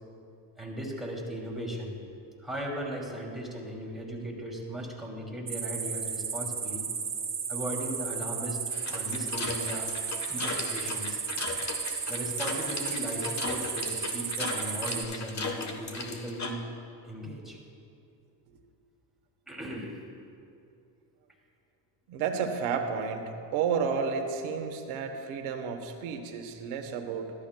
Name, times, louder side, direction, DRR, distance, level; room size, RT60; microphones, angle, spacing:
voice 1, 0.6-2.0 2.4-6.8 7.5-8.6 8.9-9.9 10.3-11.2 12.1-16.6 17.0-17.6 19.5-20.0, right 1 dB, ahead, -3 dB, 2.4 m, -37 dB
sound 1, 5.5-15.0, right 6 dB, 25° right, 0.9 m, -34 dB
sound 2, 8.7-16.5, left 3 dB, 35° left, 1.1 m, -37 dB
voice 2, 22.1-27.3, right 6 dB, 80° right, 5 dB, 1.1 m, -31 dB
14.0 x 12.0 x 2.2 m, 2.6 s
supercardioid pair, 85°, 48 cm